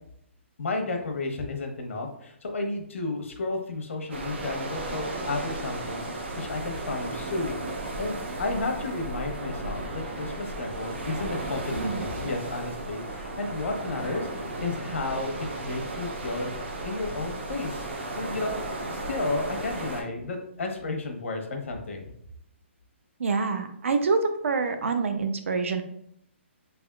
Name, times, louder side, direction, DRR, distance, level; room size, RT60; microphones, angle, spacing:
voice 1, 0.6-15.3 15.6-16.5 16.8-17.8 18.2-18.6 18.9-22.1, left 2 dB, 85° left, 3 dB, 0.9 m, -32 dB
sound 1, 4.1-20.0, right 2 dB, 60° right, 0.9 m, -35 dB
voice 2, 11.7-12.1 23.2-25.8, right 4 dB, 85° right, 7 dB, 0.6 m, -26 dB
4.0 x 3.4 x 2.3 m, 0.71 s
hypercardioid pair, 170°, 7 cm